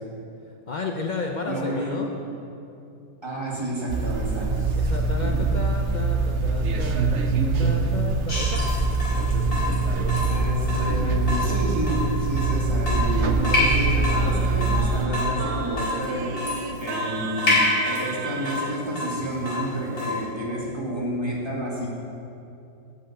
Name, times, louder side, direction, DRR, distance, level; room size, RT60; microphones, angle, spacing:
voice 1, 0.7-2.1 4.8-8.7, left 3 dB, 85° left, 2 dB, 0.4 m, -32 dB
voice 2, 1.5-2.0 3.2-4.8 5.2-5.5 10.3-16.5 16.8-21.9, equal, 15° right, -5 dB, 2.1 m, -30 dB
sound 1, 3.9-15.1, right 3 dB, 55° right, 0.9 m, -24 dB
Water tap faucet / Drip, 8.3-20.3, left 2 dB, 60° left, 3.9 m, -28 dB
Singing, 12.7-18.8, right 6 dB, 85° right, 1.4 m, -36 dB
8.0 x 8.0 x 8.6 m, 2.7 s
omnidirectional pair, 1.7 m